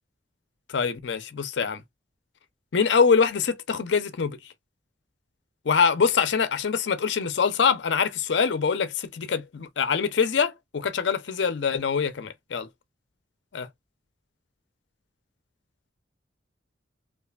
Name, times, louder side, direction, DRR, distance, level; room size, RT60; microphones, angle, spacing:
voice 1, 0.7-1.8 2.7-4.4 5.7-12.7 13.5-13.7, left 6 dB, 70° left, 0.5 m, -24 dB
3.2 x 2.4 x 2.3 m
head